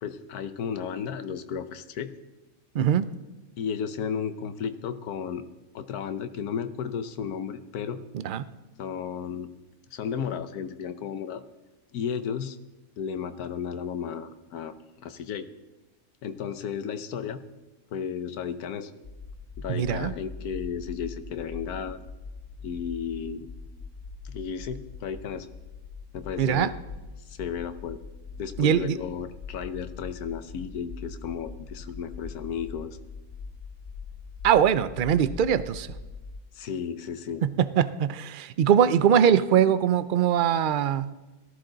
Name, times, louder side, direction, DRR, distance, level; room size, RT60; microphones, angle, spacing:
voice 1, 0.0-2.1 3.6-5.5 5.7-8.0 8.8-9.5 9.9-11.4 11.9-12.6 13.0-14.7 15.0-15.5 16.2-17.4 17.9-18.9 19.6-22.0 22.6-23.5 24.2-25.5 26.1-26.8 27.3-28.0 28.4-33.0 36.5-37.5, left 7 dB, 90° left, 10 dB, 1.3 m, -33 dB
voice 2, 2.7-3.1 8.1-8.4 19.7-20.1 26.4-26.7 28.6-29.0 34.4-35.9 37.4-41.1, right 9 dB, 70° right, 14 dB, 0.4 m, -22 dB
sound 1, 19.0-36.4, left 4 dB, 45° left, 0.8 m, -42 dB
18.0 x 14.0 x 3.9 m, 1.1 s
omnidirectional pair, 1.6 m